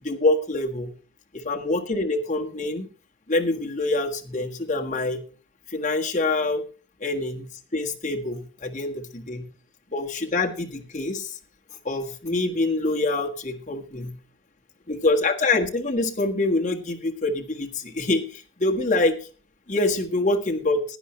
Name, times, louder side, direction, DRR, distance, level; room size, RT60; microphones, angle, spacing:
voice 1, 0.0-0.9 1.3-2.9 3.3-5.2 5.7-6.6 7.0-9.5 9.9-11.4 11.8-14.2 14.9-19.2 19.7-20.8, left 2 dB, 35° left, 1 dB, 1.6 m, -25 dB
16.5 x 10.5 x 3.2 m, 0.36 s
head